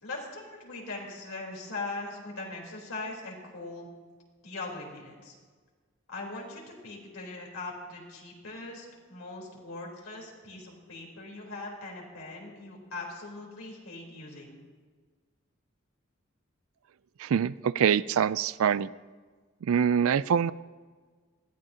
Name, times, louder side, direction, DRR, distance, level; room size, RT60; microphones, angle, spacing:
voice 1, 0.0-3.9 4.4-5.3 6.1-14.6, left 2 dB, 90° left, -2 dB, 3.8 m, -40 dB
voice 2, 17.2-18.9 19.6-20.5, right 7 dB, 75° right, 18 dB, 0.4 m, -25 dB
20.0 x 15.0 x 2.8 m, 1.5 s
head